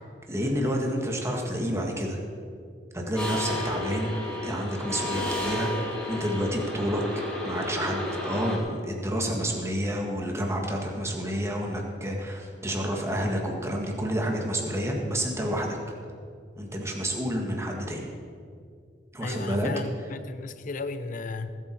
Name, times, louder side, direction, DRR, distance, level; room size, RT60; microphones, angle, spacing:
voice 1, 0.3-2.2 2.9-4.1 4.4-5.7 6.1-15.8 16.6-18.0 19.1-19.7, equal, 15° right, 1 dB, 1.7 m, -29 dB
sound 1, 3.2-8.6, left 1 dB, 5° left, 2.7 m, -32 dB
voice 2, 19.2-21.5, left 3 dB, 50° left, 11 dB, 0.7 m, -35 dB
19.0 x 8.2 x 4.5 m, 2.3 s
head